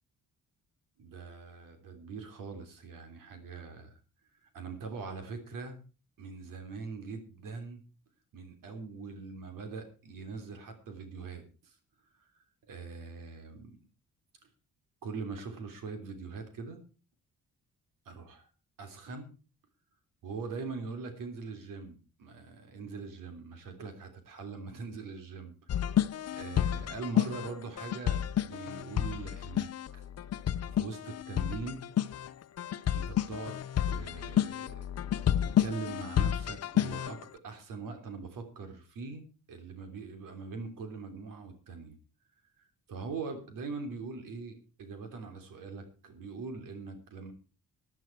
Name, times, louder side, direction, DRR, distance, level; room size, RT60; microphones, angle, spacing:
voice 1, 1.0-4.0 4.4-5.8 6.2-7.8 8.3-11.8 12.7-13.8 14.4-14.5 15.0-16.8 18.0-18.5 18.8-19.3 20.2-25.8 26.3-30.1 30.7-31.8 32.9-34.9 35.4-42.0 42.9-47.3, right 4 dB, 90° right, 7 dB, 3.2 m, -42 dB
sound 1, 25.7-37.2, left 10 dB, 50° left, 0.7 m, -30 dB
15.0 x 11.0 x 4.6 m, 0.34 s
cardioid pair, 130°, 32 cm